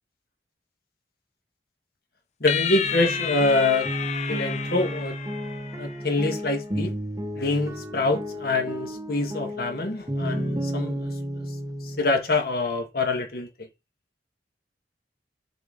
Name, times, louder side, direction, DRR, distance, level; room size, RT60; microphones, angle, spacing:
voice 1, 2.4-3.9 4.3-5.2 5.8-6.9 7.3-11.4 11.8-13.7, left 2 dB, 55° left, 1.6 m, -25 dB
sound 1, 2.5-6.0, left 8 dB, 40° left, 0.5 m, -30 dB
sound 2, 2.8-12.2, equal, 20° right, 0.8 m, -32 dB
6.9 x 3.9 x 3.8 m
head